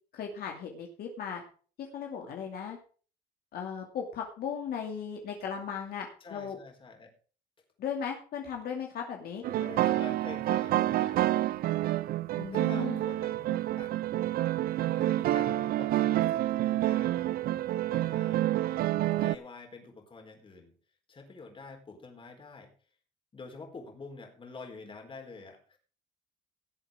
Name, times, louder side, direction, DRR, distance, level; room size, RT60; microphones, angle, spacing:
voice 1, 0.1-1.4 1.9-2.8 3.5-6.6 7.8-9.4 12.4-13.0, left 7 dB, 65° left, 1 dB, 2.5 m, -37 dB
voice 2, 6.2-7.1 9.4-11.3 12.5-13.9 14.8-17.3 17.9-18.5 19.1-20.7 21.1-22.7 23.3-25.8, left 4 dB, 30° left, 3 dB, 4.1 m, -47 dB
sound 1, 9.4-19.4, right 14 dB, 60° right, 0.5 m, -28 dB
18.0 x 7.9 x 3.7 m, 0.40 s
cardioid pair, 110°, 17 cm